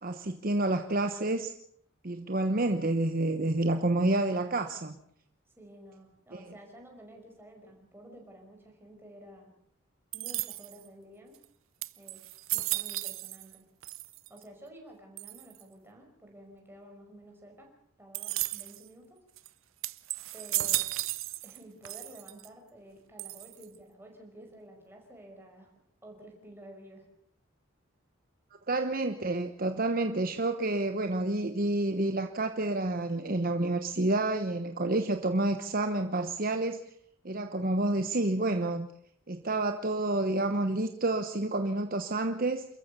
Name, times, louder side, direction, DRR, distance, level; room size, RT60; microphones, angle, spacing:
voice 1, 0.0-1.5 2.0-5.0 6.3-6.4 28.7-36.8 37.2-38.9 39.3-42.7, right 2 dB, 45° right, 7 dB, 1.0 m, -29 dB
voice 2, 5.6-9.5 10.1-11.4 12.0-12.2 12.5-13.6 14.3-17.7 18.0-19.2 20.3-21.0 21.4-25.7 26.0-27.1, right 1 dB, 10° right, 1 dB, 5.5 m, -51 dB
sound 1, 10.1-10.9 11.4-11.5 11.8-13.6 13.8-14.4 15.2-15.6 18.1-18.8 19.4-19.5 19.8-21.6 21.8-22.5 23.2-23.8, right 17 dB, 75° right, 0.7 m, -34 dB
28.0 x 14.5 x 6.9 m, 0.68 s
head